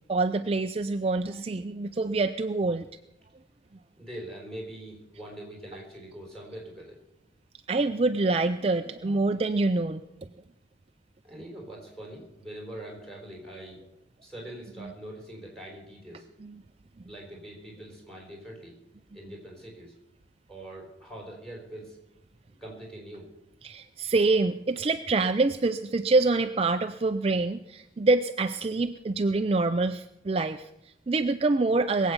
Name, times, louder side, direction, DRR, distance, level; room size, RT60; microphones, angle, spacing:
voice 1, 0.1-2.9 7.7-10.0 16.4-16.5 23.6-32.1, right 3 dB, 30° right, 8 dB, 0.4 m, -26 dB
voice 2, 4.0-7.0 11.2-13.8 14.2-16.3 17.0-18.7 19.1-19.9 20.5-22.0 22.5-23.3, right 1 dB, 5° left, -1 dB, 5.0 m, -43 dB
21.0 x 8.3 x 6.8 m, 0.88 s
head